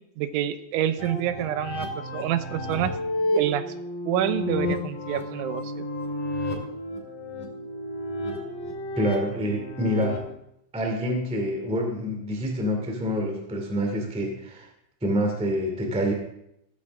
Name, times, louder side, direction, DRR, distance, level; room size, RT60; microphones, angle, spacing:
voice 1, 0.2-3.0 3.4-3.6 4.1-5.9, right 11 dB, 85° right, 11 dB, 3.1 m, -27 dB
sound 1, 1.0-10.2, left 1 dB, 50° left, 3.0 m, -31 dB
voice 2, 8.9-10.2 10.7-14.6 15.0-16.1, equal, 5° right, 2 dB, 0.7 m, -27 dB
16.0 x 14.0 x 3.7 m, 0.79 s
omnidirectional pair, 5.5 m